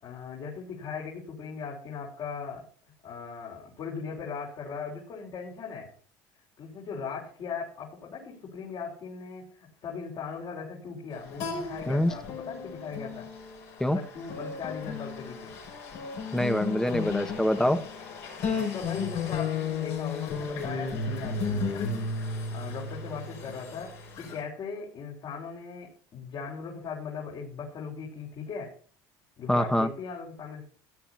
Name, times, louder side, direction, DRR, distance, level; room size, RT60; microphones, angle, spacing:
voice 1, 0.0-2.6 3.0-5.9 6.6-13.3 13.9-15.5 18.6-21.9 22.5-28.7 29.4-30.6, left 5 dB, 55° left, -4 dB, 5.4 m, -39 dB
sound 1, 11.1-24.4, left 4 dB, 75° left, 6.8 m, -34 dB
voice 2, 16.3-17.8 29.5-29.9, left 1 dB, 5° left, 9 dB, 1.5 m, -25 dB
18.0 x 10.0 x 2.8 m, 0.43 s
supercardioid pair, 95°, 10 cm